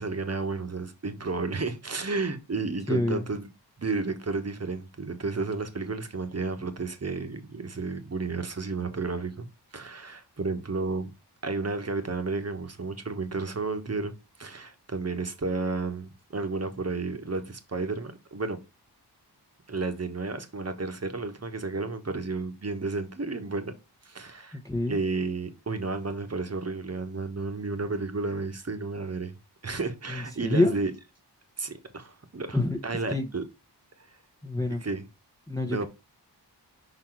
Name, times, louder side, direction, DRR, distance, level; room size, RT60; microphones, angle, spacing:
voice 1, 0.0-3.5 3.8-9.5 9.7-11.1 11.4-14.1 14.4-18.6 19.7-23.7 24.0-24.6 24.9-29.3 29.6-30.9 31.6-32.6 32.8-33.4 34.0-34.1 34.8-35.1 35.6-35.9, right 3 dB, 35° right, 1.2 m, -32 dB
voice 2, 2.9-3.2 24.5-25.0 30.1-30.8 32.5-32.8 33.1-33.3 34.4-34.9 35.5-35.8, left 2 dB, 10° left, 1.0 m, -27 dB
5.8 x 4.0 x 4.5 m
wide cardioid pair, 90°, 42 cm